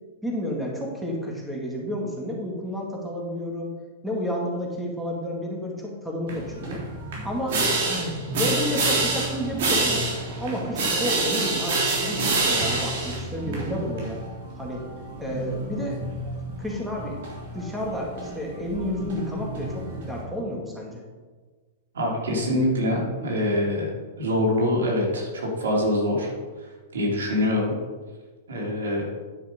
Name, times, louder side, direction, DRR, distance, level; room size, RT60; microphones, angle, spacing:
voice 1, 0.2-3.7 4.0-6.8 7.2-10.1 10.4-14.2 14.6-14.9 15.2-16.0 16.6-17.2 17.5-21.0, equal, ahead, -2 dB, 2.0 m, -31 dB
sound 1, 6.3-20.2, right 2 dB, 65° right, 3.2 m, -28 dB
voice 2, 21.9-23.9 24.2-26.3 26.9-27.7 28.5-29.1, left 1 dB, 90° right, -1 dB, 3.0 m, -24 dB
9.8 x 5.9 x 5.1 m, 1.4 s
hypercardioid pair, 135°, 0 cm